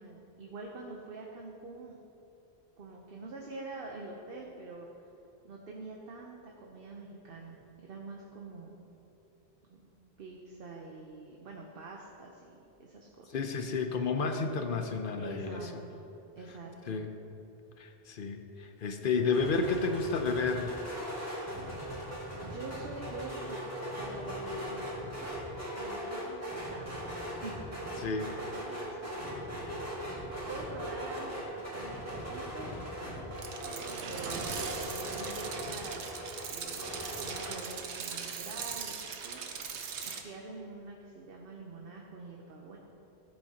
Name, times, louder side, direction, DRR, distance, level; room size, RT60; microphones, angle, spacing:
voice 1, 0.0-2.0 2.8-4.9 5.4-8.9 9.7-9.8 10.2-13.3 15.2-16.0 16.4-17.0 22.4-23.6 24.0-25.1 25.7-27.0 27.4-27.5 27.9-29.4 30.5-32.7 33.6-36.1 36.5-39.4 40.0-42.8, right 3 dB, 60° right, -1 dB, 1.0 m, -46 dB
voice 2, 13.3-15.6 16.9-17.1 17.8-20.8 28.0-28.3, left 4 dB, 55° left, 6 dB, 0.8 m, -31 dB
sound 1, 19.3-37.5, equal, 15° right, 2.0 m, -39 dB
sound 2, 21.6-25.5, right 1 dB, 30° right, 0.8 m, -50 dB
sound 3, 33.3-40.2, right 6 dB, 85° right, 1.0 m, -40 dB
13.5 x 7.9 x 2.9 m, 2.9 s
omnidirectional pair, 1.1 m